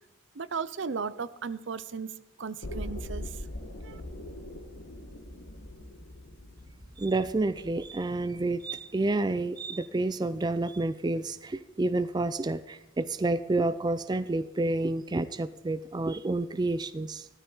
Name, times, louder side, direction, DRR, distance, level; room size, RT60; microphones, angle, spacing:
voice 1, 0.3-3.4 3.8-4.0, right 5 dB, 65° right, 15 dB, 0.6 m, -36 dB
sound 1, 2.6-8.6 8.9-9.0, left 1 dB, 80° left, 1.6 m, -42 dB
voice 2, 7.0-17.3, right 2 dB, 20° right, 13 dB, 0.4 m, -29 dB
15.0 x 13.0 x 4.0 m, 0.93 s
head